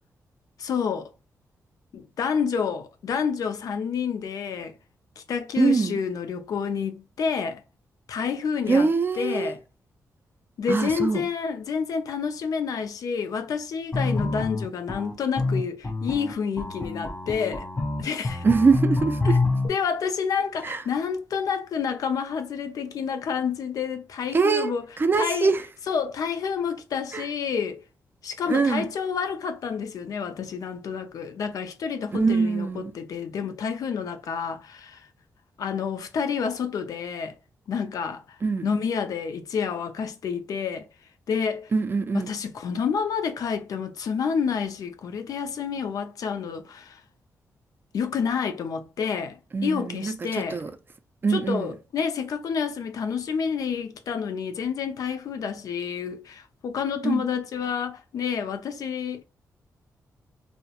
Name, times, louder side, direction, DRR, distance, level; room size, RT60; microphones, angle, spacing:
voice 1, 0.6-1.1 1.9-4.8 5.2-7.6 8.1-8.9 9.2-9.6 10.6-17.7 18.0-18.4 19.2-19.4 19.6-24.9 25.1-25.5 25.9-27.8 28.2-35.1 35.6-37.3 37.7-38.2 38.6-40.9 41.3-41.7 42.1-47.0 47.9-50.6 51.3-59.2, left 6 dB, 70° left, 0.4 m, -29 dB
voice 2, 5.6-6.0 8.7-9.5 10.7-11.3 18.4-19.4 20.6-20.8 24.3-24.7 25.0-25.6 27.1-27.2 28.5-28.9 32.1-32.9 38.4-38.7 41.7-42.3 49.5-50.7 51.2-51.7 57.0-57.2, right 4 dB, 35° right, 0.3 m, -23 dB
sound 1, 13.9-19.7, left 3 dB, 20° left, 0.5 m, -26 dB
2.2 x 2.0 x 2.8 m
cardioid pair, 85°, 6 cm